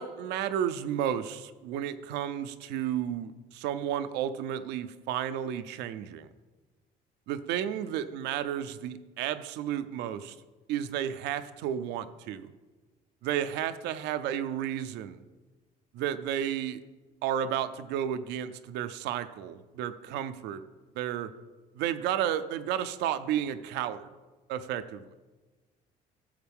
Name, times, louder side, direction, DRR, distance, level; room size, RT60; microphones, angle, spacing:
voice 1, 0.0-6.3 7.3-10.3 10.7-12.5 13.2-15.2 15.9-16.8 17.2-20.6 21.0-21.3 21.8-24.1 24.5-25.1, right 10 dB, 90° right, 11 dB, 0.6 m, -32 dB
14.0 x 7.3 x 3.6 m, 1.3 s
cardioid pair, 110°, 17 cm